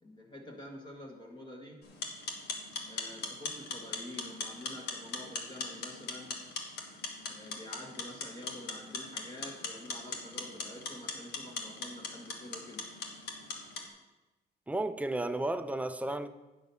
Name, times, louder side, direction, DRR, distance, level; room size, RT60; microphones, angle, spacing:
voice 1, 0.0-1.8 2.9-6.5 7.3-12.8, left 1 dB, 25° left, 1.3 m, -47 dB
sound 1, 1.8-13.9, left 4 dB, 75° left, 1.4 m, -40 dB
voice 2, 14.7-16.3, right 2 dB, 10° right, 0.5 m, -33 dB
9.2 x 6.2 x 5.5 m
cardioid pair, 110°, 17 cm